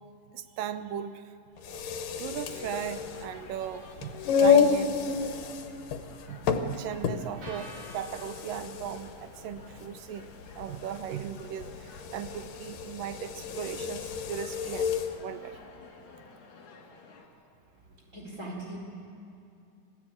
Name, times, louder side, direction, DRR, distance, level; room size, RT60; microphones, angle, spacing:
voice 1, 0.3-1.3 1.7-1.8 2.2-5.4 6.3-15.6, right 9 dB, 85° right, 11 dB, 2.5 m, -38 dB
sound 1, 1.6-15.2, left 6 dB, 80° left, 2.7 m, -30 dB
sound 2, 2.4-17.3, left 4 dB, 60° left, 3.8 m, -50 dB
sound 3, 7.4-15.6, equal, 65° right, 5.1 m, -55 dB
voice 2, 17.7-18.8, right 1 dB, 20° right, -2 dB, 4.5 m, -41 dB
26.5 x 16.0 x 8.7 m, 2.6 s
omnidirectional pair, 3.8 m